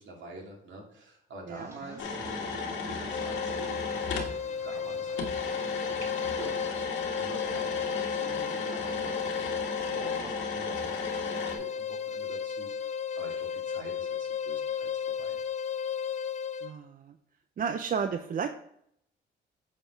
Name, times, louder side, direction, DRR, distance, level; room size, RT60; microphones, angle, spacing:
voice 1, 0.0-5.6 6.4-6.6 7.2-15.4, right 2 dB, 70° right, 0 dB, 2.4 m, -47 dB
sound 1, 1.5-6.8, right 1 dB, 15° right, 1.9 m, -52 dB
voice 2, 1.5-2.0 16.6-17.2 17.6-18.5, right 6 dB, 45° right, 8 dB, 0.6 m, -33 dB
sound 2, 2.0-4.3 5.2-11.6, left 4 dB, 80° left, 1.7 m, -35 dB
sound 3, 3.1-16.8, left 7 dB, 35° left, 0.4 m, -34 dB
8.5 x 4.5 x 4.5 m, 0.71 s
cardioid pair, 90°, 20 cm